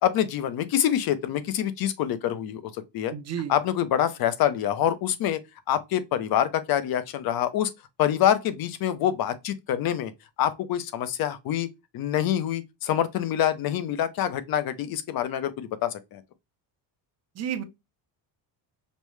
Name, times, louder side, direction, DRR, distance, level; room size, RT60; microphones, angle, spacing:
voice 1, 0.0-2.6 2.9-3.1 3.5-5.4 5.7-7.7 8.0-10.1 10.4-11.7 11.9-16.2, left 10 dB, 55° left, 0.7 m, -26 dB
voice 2, 3.1-3.5 17.4-17.6, right 9 dB, 35° right, 0.6 m, -31 dB
5.3 x 2.1 x 3.1 m
cardioid pair, 140°, 44 cm